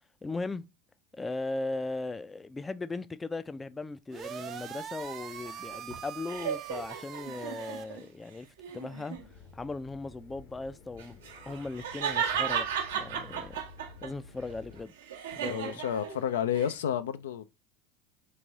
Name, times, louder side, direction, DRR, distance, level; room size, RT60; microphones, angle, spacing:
voice 1, 0.2-0.7 1.1-8.5 8.7-9.2 9.5-13.6 14.0-14.9 15.4-15.8, left 3 dB, 15° left, 0.4 m, -38 dB
sound 1, 4.1-7.8, right 8 dB, 40° right, 0.5 m, -42 dB
sound 2, 5.0-8.1 8.6-9.2 11.0-14.1 14.5-16.7, right 8 dB, 75° right, 0.9 m, -35 dB
sound 3, 9.1-14.9, left 5 dB, 50° left, 0.9 m, -52 dB
voice 2, 15.5-17.5, left 9 dB, 75° left, 0.4 m, -31 dB
3.5 x 3.2 x 4.0 m
hypercardioid pair, 80°, 0 cm